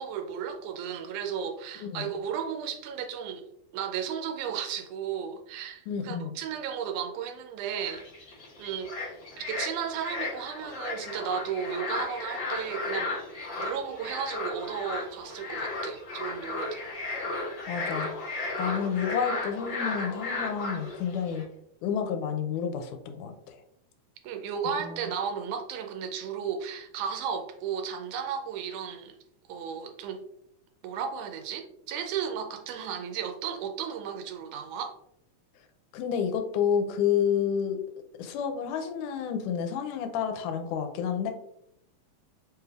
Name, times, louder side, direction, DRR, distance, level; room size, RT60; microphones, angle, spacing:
voice 1, 0.0-3.4 3.7-8.0 8.6-8.9 9.4-13.1 13.6-16.9 24.2-29.2 29.5-30.2 30.8-34.9, right 7 dB, 80° right, 5 dB, 2.0 m, -34 dB
voice 2, 5.9-6.3 17.7-18.1 18.6-21.5 21.8-23.6 24.8-25.1 35.9-37.8 38.2-41.3, left 7 dB, 90° left, 6 dB, 2.1 m, -29 dB
sound 1, 7.8-21.4, left 2 dB, 50° left, 1.5 m, -35 dB
4.8 x 3.2 x 2.3 m, 0.75 s
omnidirectional pair, 3.5 m